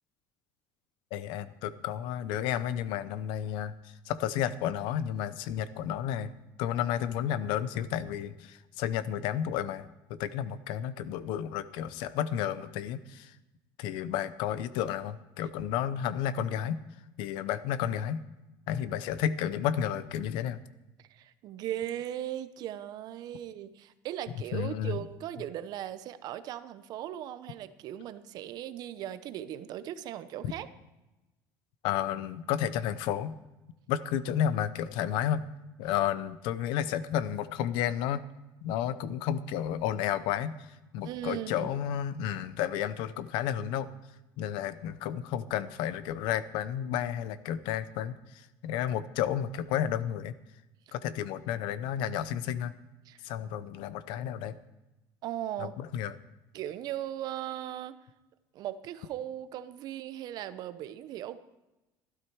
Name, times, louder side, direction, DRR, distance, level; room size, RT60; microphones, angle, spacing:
voice 1, 1.1-6.3 6.6-13.3 13.8-16.8 17.2-18.2 18.7-20.6 24.5-25.0 31.8-33.4 33.9-35.4 35.8-38.2 38.6-40.6 40.9-43.9 44.4-50.3 50.9-52.7 53.2-54.6 55.6-56.2, left 10 dB, 75° left, 15 dB, 0.7 m, -32 dB
voice 2, 21.1-30.7 41.0-41.7 50.9-51.0 53.1-53.2 55.2-55.7 56.5-58.0 58.5-61.4, right 12 dB, 55° right, 13 dB, 0.8 m, -38 dB
15.0 x 12.5 x 4.7 m, 0.99 s
cardioid pair, 145°, 8 cm